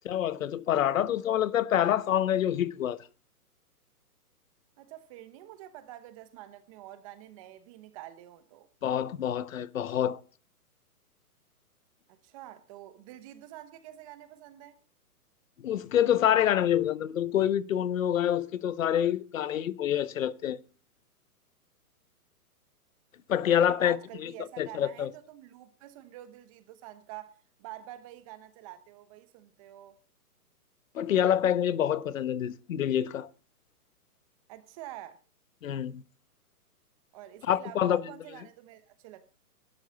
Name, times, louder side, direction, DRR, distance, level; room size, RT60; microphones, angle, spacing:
voice 1, 0.0-3.0 8.8-10.2 15.6-20.6 23.3-24.0 24.2-24.3 24.6-25.1 30.9-33.3 35.6-36.0 37.5-38.0, left 10 dB, 55° left, 1.2 m, -26 dB
voice 2, 4.8-8.7 12.1-14.8 23.4-30.0 34.5-35.2 37.1-39.3, right 13 dB, 20° right, 0.9 m, -47 dB
18.5 x 12.5 x 4.1 m
hypercardioid pair, 150°, 46 cm